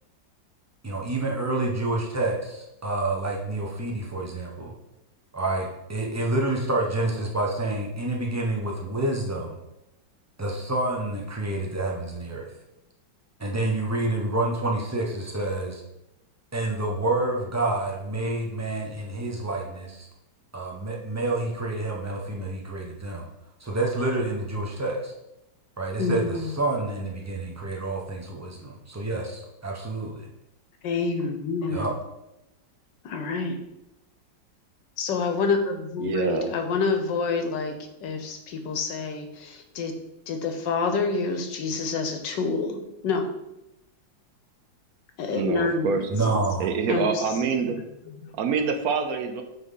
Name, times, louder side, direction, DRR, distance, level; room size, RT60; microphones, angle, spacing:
voice 1, 0.8-4.7 5.3-9.6 10.4-12.5 13.4-15.8 16.5-20.1 20.5-23.2 23.6-25.1 25.8-30.2 31.7-31.9 46.1-46.7, right 2 dB, 25° right, -2 dB, 0.3 m, -28 dB
voice 2, 26.0-26.5 30.8-31.9 33.0-33.6 35.0-39.9 40.3-42.8 43.0-43.3 45.2-46.0 46.3-46.4 46.9-47.2 48.2-48.3, left 4 dB, 70° left, 6 dB, 1.4 m, -27 dB
voice 3, 36.0-36.5 45.3-47.8 48.3-49.4, right 5 dB, 70° right, 6 dB, 0.9 m, -26 dB
9.1 x 3.9 x 3.9 m, 0.90 s
omnidirectional pair, 2.1 m